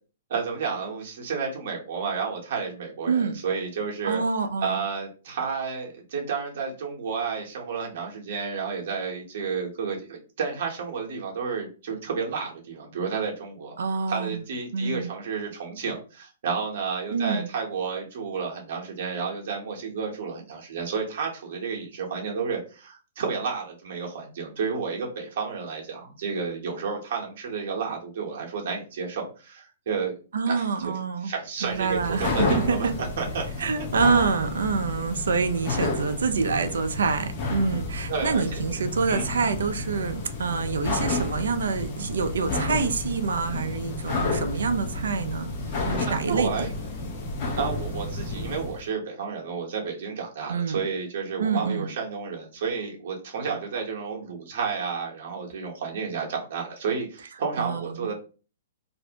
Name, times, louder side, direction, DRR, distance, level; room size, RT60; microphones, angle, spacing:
voice 1, 0.3-4.2 4.6-13.8 14.1-30.2 30.5-33.7 38.1-38.6 39.1-39.3 44.5-44.6 45.7-45.8 46.0-46.7 47.6-58.1, right 5 dB, 60° right, 0.8 m, -31 dB
voice 2, 3.1-3.4 4.0-4.8 13.8-14.4 14.7-15.1 17.1-17.5 30.3-31.3 31.6-32.9 33.6-45.5 45.8-46.5 50.5-50.8 51.4-51.9 57.6-58.1, right 5 dB, 80° right, 0.4 m, -26 dB
sound 1, 31.6-48.8, left 2 dB, 45° left, 0.7 m, -31 dB
2.5 x 2.0 x 2.7 m
hypercardioid pair, 130°, 0 cm